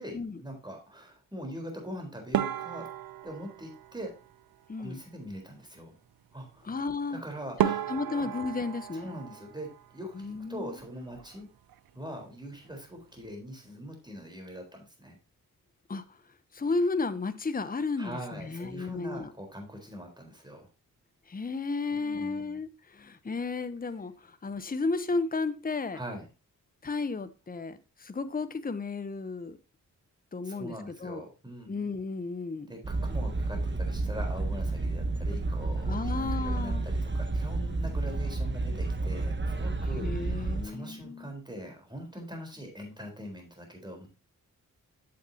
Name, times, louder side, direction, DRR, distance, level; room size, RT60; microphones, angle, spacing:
voice 1, 0.0-2.9 3.2-4.1 4.8-5.9 6.3-6.7 7.1-7.8 8.1-8.3 8.9-11.5 11.9-15.2 18.0-20.7 21.9-22.6 25.9-26.3 30.4-31.7 32.7-44.1, equal, 15° right, 4.0 m, -42 dB
sound 1, 2.3-4.8 7.1-7.2 7.6-10.4 10.6-11.4 11.7-11.9 12.2-12.3 12.9-13.3, right 11 dB, 85° right, 0.6 m, -34 dB
voice 2, 6.6-7.2 7.6-9.1 10.2-10.7 15.9-16.0 16.5-19.3 21.3-26.0 26.8-29.6 30.3-30.7 31.0-31.2 31.7-32.7 35.9-36.9 39.9-41.3, left 3 dB, 25° left, 0.8 m, -33 dB
sound 2, 32.8-40.6, right 2 dB, 35° right, 1.0 m, -30 dB
8.6 x 7.4 x 2.8 m
cardioid pair, 55°, 34 cm